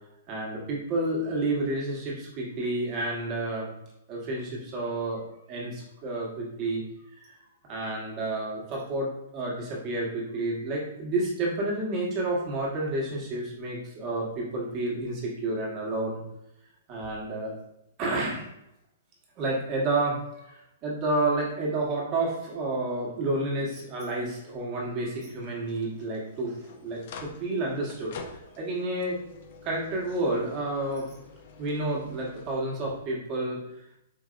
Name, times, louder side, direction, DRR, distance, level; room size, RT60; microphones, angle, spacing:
voice 1, 0.3-3.7 4.1-5.2 5.5-6.8 7.2-7.3 7.7-16.2 16.9-17.5 18.0-18.5 19.4-28.1 28.6-29.2 29.6-31.1 31.6-33.6, right 2 dB, 30° right, -3 dB, 1.2 m, -30 dB
sound 1, 22.8-32.5, left 4 dB, 50° left, 0.5 m, -49 dB
4.6 x 2.7 x 2.4 m, 0.84 s
hypercardioid pair, 155°, 0 cm